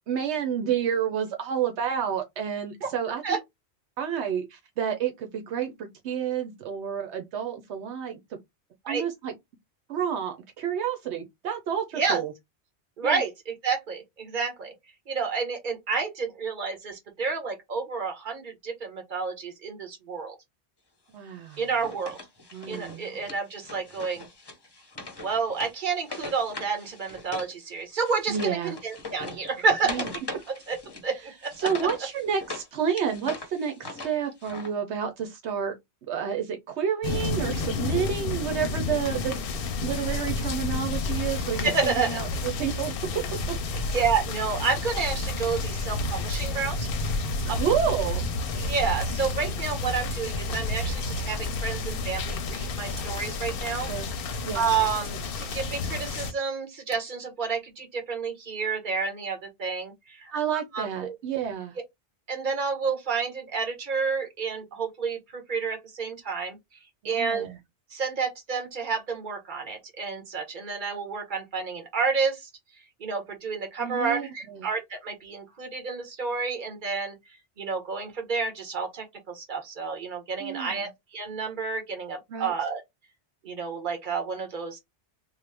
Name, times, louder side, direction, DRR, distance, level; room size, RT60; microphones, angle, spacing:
voice 1, 0.1-3.2 4.0-8.2 8.9-9.3 9.9-12.3 13.0-13.2 21.1-21.6 22.5-23.2 28.3-28.8 29.8-30.1 31.6-35.7 36.1-42.9 43.5-43.8 47.4-48.3 53.8-54.1 54.4-54.6 60.3-61.8 67.0-67.6 73.8-74.7 80.4-80.9 82.3-82.5, right 8 dB, 80° right, 1.0 m, -30 dB
voice 2, 13.0-14.7 15.1-20.4 21.6-22.2 22.7-24.2 25.2-30.8 31.0-31.7 41.6-42.2 43.9-46.9 48.6-53.9 54.3-60.3 60.7-61.2 62.3-66.6 67.0-67.5 67.9-72.5 73.0-77.1 77.6-82.8 83.4-84.8, right 5 dB, 45° right, 1.2 m, -30 dB
Wood, 21.5-27.5 27.8-32.7 33.0-34.7, left 2 dB, 25° left, 0.6 m, -40 dB
sound 1, 37.0-56.3, left 3 dB, 65° left, 0.7 m, -30 dB
sound 2, 47.4-47.6 49.0-49.2 50.1-50.3 51.4-51.7 53.0-53.2 55.0-55.2, equal, 10° right, 1.5 m, -48 dB
3.1 x 2.1 x 3.3 m
omnidirectional pair, 1.1 m